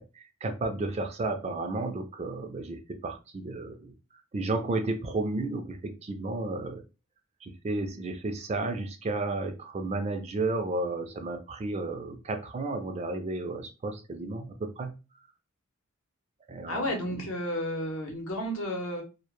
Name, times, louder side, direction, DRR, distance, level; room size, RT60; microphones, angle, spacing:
voice 1, 0.0-3.9 4.3-6.8 7.4-14.9 16.5-17.3, right 2 dB, 30° right, 6 dB, 0.3 m, -33 dB
voice 2, 16.7-19.0, equal, 70° left, 2 dB, 0.8 m, -32 dB
2.1 x 2.1 x 2.9 m, 0.29 s
head